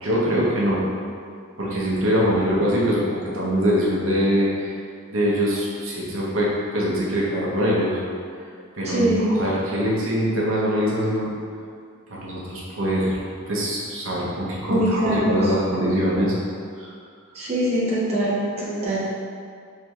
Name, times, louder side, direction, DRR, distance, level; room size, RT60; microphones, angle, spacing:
voice 1, 0.0-0.8 1.6-4.8 5.1-8.0 8.8-9.1 9.4-11.3 12.1-13.2 13.5-16.3 16.8-16.9, equal, 70° right, -6 dB, 0.7 m, -23 dB
voice 2, 8.8-9.4 14.7-15.5 17.3-19.0, right 1 dB, 30° right, -8 dB, 0.7 m, -23 dB
4.5 x 3.3 x 2.3 m, 2.2 s
head